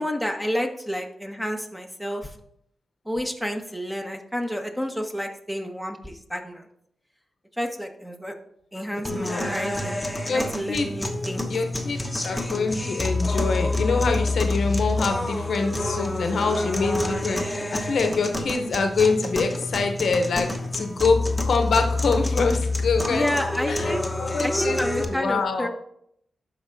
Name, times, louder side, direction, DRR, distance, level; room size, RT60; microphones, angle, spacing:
voice 1, 0.0-2.3 3.0-6.7 7.6-8.3 8.7-10.0 10.3-11.5 23.1-24.0 24.4-25.7, equal, 5° right, 4 dB, 1.3 m, -30 dB
voice 2, 9.0-9.5 10.3-10.4 10.7-10.9 11.5-21.2 21.4-23.3 23.7-25.7, left 4 dB, 70° left, 5 dB, 0.8 m, -25 dB
sound 1, 9.0-25.0, left 2 dB, 15° left, 1.1 m, -27 dB
12.0 x 4.7 x 2.7 m, 0.70 s
cardioid pair, 50°, 0 cm